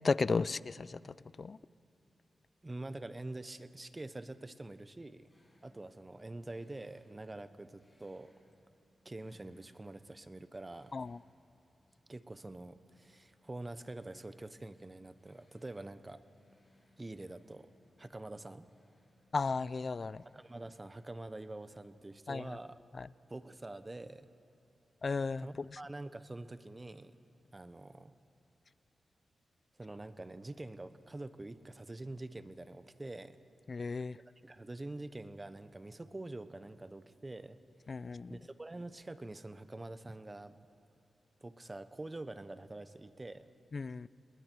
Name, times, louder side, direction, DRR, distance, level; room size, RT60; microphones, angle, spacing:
voice 1, 0.0-1.6 10.9-11.2 19.3-20.2 22.3-22.5 22.9-23.1 25.0-25.8 33.7-34.2 37.9-38.4 43.7-44.1, left 4 dB, 50° left, 19 dB, 0.4 m, -35 dB
voice 2, 2.6-5.3 5.6-8.3 9.0-10.9 12.1-16.2 17.0-17.7 18.0-18.7 20.3-22.8 23.3-24.3 25.4-27.2 27.5-28.1 29.8-33.4 34.4-37.6 38.3-40.7 41.4-43.5, right 2 dB, 25° right, 12 dB, 1.0 m, -46 dB
sound 1, 5.3-21.2, left 1 dB, 20° left, 6.3 m, -71 dB
29.0 x 20.0 x 4.7 m, 2.9 s
cardioid pair, 55°, 0 cm